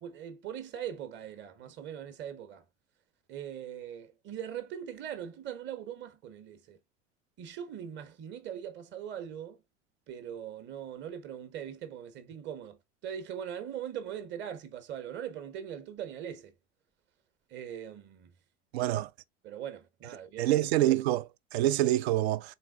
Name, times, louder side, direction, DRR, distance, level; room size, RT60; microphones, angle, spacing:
voice 1, 0.0-2.7 3.3-6.8 7.4-9.6 10.1-16.5 17.5-18.3 19.4-20.7, right 9 dB, 30° right, 1.0 m, -41 dB
voice 2, 18.7-19.1 20.4-22.5, right 14 dB, 60° right, 0.5 m, -26 dB
4.0 x 3.7 x 2.3 m
figure-of-eight pair, 80°, 36 cm